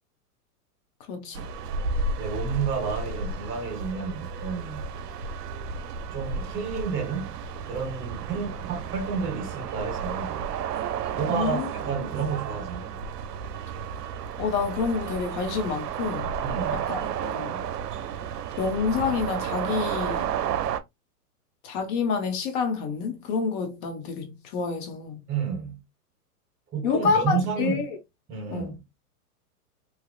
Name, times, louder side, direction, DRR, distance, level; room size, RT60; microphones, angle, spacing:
voice 1, 1.1-1.5 11.3-11.7 14.4-16.3 16.7-17.7 18.6-20.3 21.6-25.3 26.8-27.9 28.5-28.7, left 5 dB, 35° left, 0.8 m, -28 dB
sound 1, 1.3-20.8, right 6 dB, 85° right, 0.6 m, -32 dB
voice 2, 2.2-4.9 6.1-7.4 7.6-10.4 11.1-12.9 16.4-16.9 25.3-25.8 26.7-27.9 28.3-29.0, right 5 dB, 25° right, 1.2 m, -31 dB
3.0 x 2.7 x 2.3 m
hypercardioid pair, 125°, 47 cm